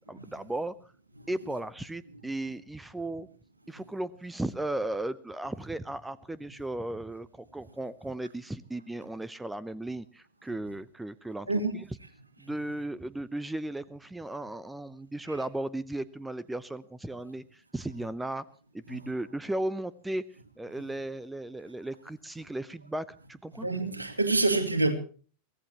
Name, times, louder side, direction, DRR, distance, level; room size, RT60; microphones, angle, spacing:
voice 1, 0.1-0.7 1.3-3.3 3.7-11.5 12.4-18.4 18.7-20.2 20.6-23.7, right 1 dB, 5° right, 19 dB, 0.7 m, -36 dB
voice 2, 23.6-24.9, right 2 dB, 80° right, 8 dB, 2.2 m, -27 dB
23.0 x 16.5 x 2.9 m, 0.41 s
figure-of-eight pair, 90°, 0 cm